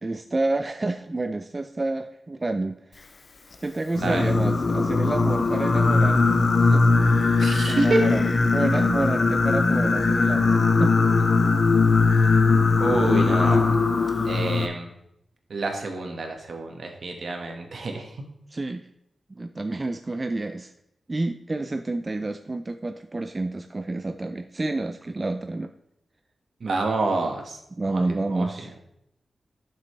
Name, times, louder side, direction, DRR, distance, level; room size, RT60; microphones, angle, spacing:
voice 1, 0.0-3.0 3.6-6.9 7.6-11.0 18.5-18.9 19.3-20.7 21.1-25.7 27.8-28.7, right 2 dB, 25° right, 7 dB, 0.3 m, -29 dB
Singing, 4.0-14.7, left 3 dB, 50° left, 0.7 m, -20 dB
voice 2, 7.4-8.0 12.8-13.7 14.2-14.9 15.5-18.1 26.6-27.6 27.9-28.0 28.3-28.5, right 3 dB, 65° right, 3 dB, 1.5 m, -27 dB
11.5 x 6.7 x 3.3 m, 0.79 s
wide cardioid pair, 140°, 0 cm